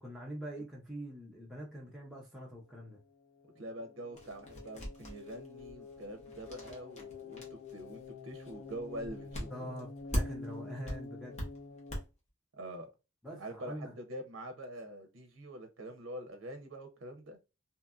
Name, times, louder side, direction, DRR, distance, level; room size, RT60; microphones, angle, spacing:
voice 1, 0.0-3.0 9.5-11.4 13.2-13.9, equal, ahead, 0.6 m, -44 dB
sound 1, 2.6-12.0, left 3 dB, 90° left, 0.4 m, -48 dB
voice 2, 3.5-9.7 12.5-12.9 13.4-17.4, right 1 dB, 65° right, 0.5 m, -45 dB
sound 2, 4.2-10.6 10.9-12.0, equal, 35° left, 0.9 m, -40 dB
2.7 x 2.5 x 2.3 m
head